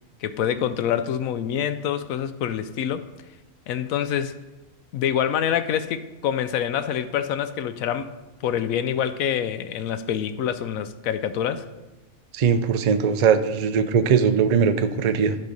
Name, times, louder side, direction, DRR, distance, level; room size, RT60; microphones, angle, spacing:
voice 1, 0.2-3.1 3.7-4.4 4.9-11.7, left 9 dB, 80° left, 1.0 m, -26 dB
voice 2, 12.3-15.4, right 6 dB, 70° right, 0.3 m, -20 dB
11.0 x 5.5 x 5.1 m
omnidirectional pair, 1.4 m